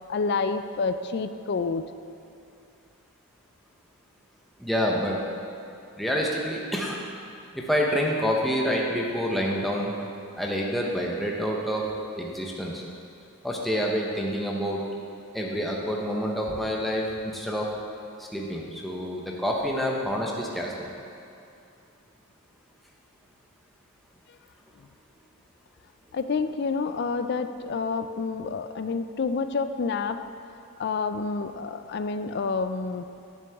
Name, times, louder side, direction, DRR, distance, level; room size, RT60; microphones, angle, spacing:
voice 1, 0.1-1.9 26.1-30.2 30.8-33.1, left 4 dB, 50° left, 10 dB, 0.3 m, -28 dB
voice 2, 4.6-5.2 6.0-7.1 7.5-9.9 10.4-11.8 12.1-12.8 13.4-14.8 15.3-17.7 18.2-20.9, equal, ahead, -2 dB, 0.7 m, -27 dB
10.5 x 7.0 x 3.5 m, 2.7 s
head